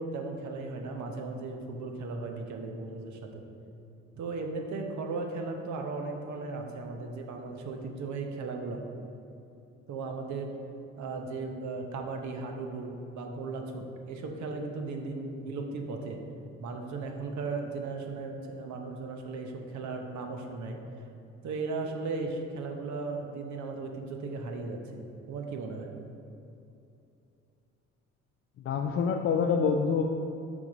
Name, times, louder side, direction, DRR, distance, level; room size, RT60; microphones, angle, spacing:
voice 1, 0.0-3.4 4.1-8.8 9.9-10.5 11.0-16.2 16.6-20.8 21.4-25.0 25.3-25.9, right 3 dB, 55° right, 3 dB, 0.9 m, -36 dB
voice 2, 28.7-30.0, left 6 dB, 35° left, 2 dB, 0.4 m, -26 dB
6.1 x 3.9 x 4.9 m, 2.7 s
hypercardioid pair, 50°, 35 cm